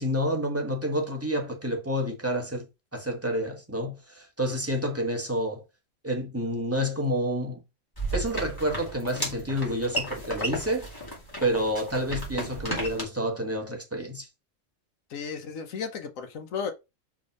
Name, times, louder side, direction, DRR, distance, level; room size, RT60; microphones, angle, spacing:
voice 1, 0.0-2.7 2.9-5.6 6.0-7.6 8.1-10.9 11.4-14.3, equal, 10° right, 1.2 m, -29 dB
sound 1, 8.0-13.0, right 1 dB, 15° left, 2.4 m, -34 dB
voice 2, 15.1-16.7, left 6 dB, 85° left, 1.3 m, -34 dB
5.2 x 3.6 x 5.2 m
omnidirectional pair, 1.3 m